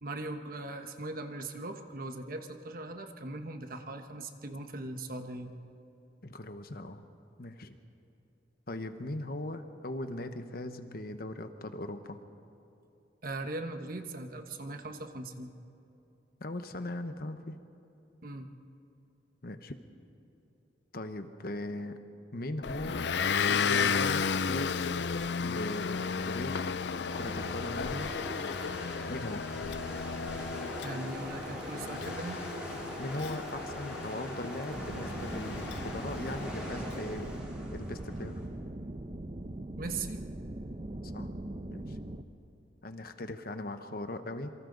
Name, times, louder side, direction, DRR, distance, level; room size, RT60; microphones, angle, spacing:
voice 1, 0.0-5.5 13.2-15.5 18.2-18.5 30.8-32.4 39.8-40.2, right 2 dB, 50° right, 6 dB, 1.2 m, -39 dB
voice 2, 6.2-7.0 7.4-7.8 8.7-12.2 16.4-17.6 19.4-19.8 20.9-22.0 22.3-23.1 23.5-25.0 25.4-26.8 27.1-28.1 29.1-29.5 33.0-38.3 41.0-41.3 41.7-42.0 42.8-44.5, left 1 dB, 55° left, 8 dB, 1.1 m, -39 dB
Motor vehicle (road) / Engine, 22.6-36.8, left 6 dB, 75° left, 0.5 m, -34 dB
sound 1, 27.1-38.5, equal, 5° right, 4.4 m, -42 dB
sound 2, 34.7-42.2, right 1 dB, 35° right, 0.7 m, -40 dB
27.5 x 24.0 x 4.0 m, 2.8 s
head